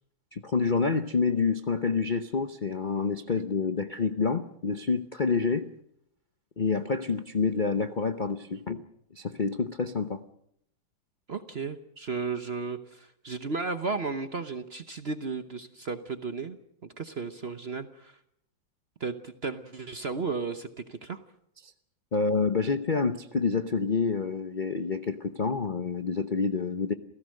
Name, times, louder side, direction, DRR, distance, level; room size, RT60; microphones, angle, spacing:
voice 1, 0.3-5.7 6.6-8.8 9.1-10.2 21.6-21.7 22.1-26.9, left 4 dB, 75° left, 9 dB, 0.4 m, -28 dB
voice 2, 11.3-18.2 19.0-21.2, right 4 dB, 45° right, 9 dB, 0.8 m, -34 dB
28.0 x 16.5 x 6.5 m, 0.74 s
omnidirectional pair, 2.2 m